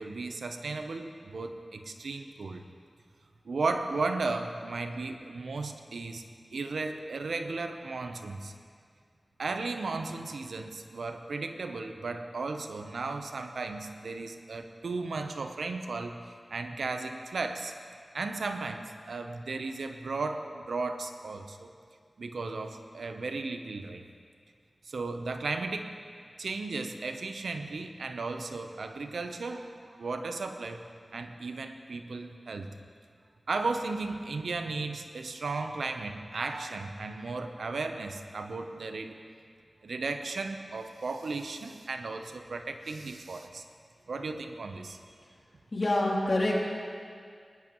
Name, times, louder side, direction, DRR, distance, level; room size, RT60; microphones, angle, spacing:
voice 1, 0.0-2.6 3.4-6.2 6.5-8.5 9.4-16.2 16.5-17.7 18.1-21.7 22.2-24.0 24.8-25.9 26.4-30.8 31.1-32.7 33.5-39.2 39.8-43.6 44.1-45.0, right 3 dB, 85° right, 6 dB, 0.8 m, -35 dB
voice 2, 45.7-46.6, left 1 dB, 55° left, -4 dB, 3.0 m, -26 dB
21.0 x 11.0 x 3.1 m, 2.2 s
cardioid pair, 50°, 0 cm